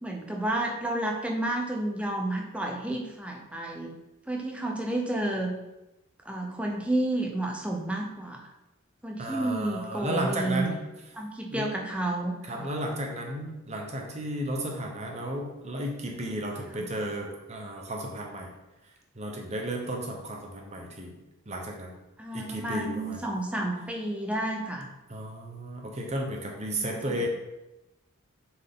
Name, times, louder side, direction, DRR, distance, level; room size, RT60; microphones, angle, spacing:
voice 1, 0.0-3.9 4.3-5.6 6.2-8.4 9.0-10.7 11.2-12.7 16.8-16.9 22.2-24.9 26.7-26.9, right 1 dB, 5° right, 0 dB, 0.7 m, -31 dB
voice 2, 9.2-10.8 11.5-11.7 12.4-18.5 18.8-21.1 21.5-21.9 22.3-23.2 25.1-27.3, right 1 dB, 30° right, 1 dB, 0.9 m, -33 dB
7.1 x 4.6 x 3.7 m, 0.97 s
head